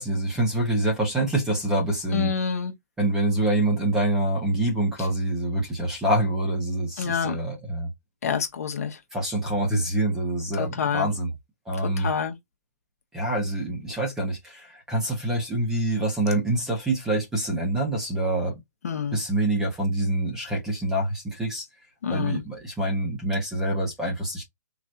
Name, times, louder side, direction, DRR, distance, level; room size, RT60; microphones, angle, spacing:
voice 1, 0.0-2.3 3.0-7.9 9.1-11.3 11.7-12.1 13.1-18.5 19.1-21.7 22.1-24.4, right 1 dB, 5° right, 1.0 m, -26 dB
voice 2, 2.1-2.7 7.0-7.4 8.2-9.0 10.6-11.1 12.0-12.3 18.8-19.2 22.0-22.4, left 7 dB, 60° left, 1.1 m, -27 dB
3.9 x 3.0 x 2.5 m
hypercardioid pair, 170°, 9 cm